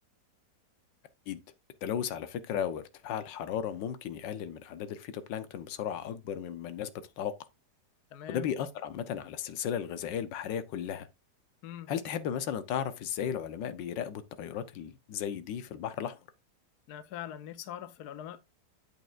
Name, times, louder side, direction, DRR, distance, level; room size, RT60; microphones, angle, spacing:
voice 1, 1.8-6.9 7.2-7.4 8.3-11.1 11.9-16.2, left 9 dB, 85° left, 1.5 m, -35 dB
voice 2, 8.1-8.5 11.6-11.9 16.9-18.4, left 11 dB, 70° left, 1.2 m, -42 dB
8.3 x 7.4 x 2.4 m
omnidirectional pair, 1.9 m